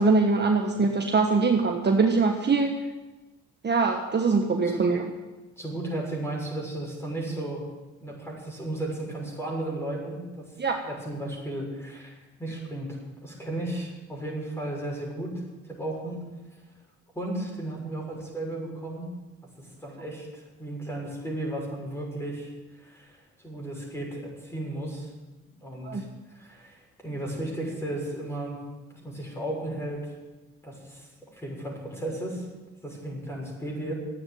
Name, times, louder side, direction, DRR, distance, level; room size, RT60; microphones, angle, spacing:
voice 1, 0.0-2.7 3.6-5.0 10.6-10.8 25.8-26.0, right 4 dB, 35° right, 3 dB, 1.4 m, -23 dB
voice 2, 5.6-7.6 8.0-10.4 10.8-12.1 12.4-16.2 17.1-19.1 19.8-25.1 25.6-26.0 26.3-28.6 28.9-30.1 30.6-31.1 31.3-32.5 32.8-33.9, right 1 dB, 10° left, -2 dB, 6.5 m, -34 dB
12.5 x 8.9 x 9.4 m, 1.1 s
cardioid pair, 90°, 30 cm